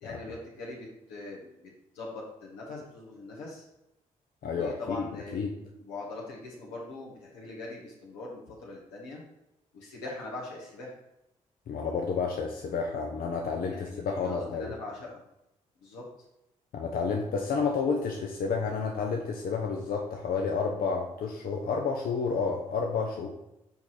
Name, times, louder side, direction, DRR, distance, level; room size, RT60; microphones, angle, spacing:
voice 1, 0.0-3.6 4.5-5.4 5.8-9.2 9.7-10.9 13.7-15.2 15.8-16.0, left 2 dB, 85° left, -3 dB, 1.5 m, -41 dB
voice 2, 4.4-5.6 11.7-14.7 16.7-23.3, left 5 dB, 60° left, 1 dB, 0.8 m, -30 dB
5.6 x 4.7 x 4.2 m, 0.87 s
hypercardioid pair, 45°, 17 cm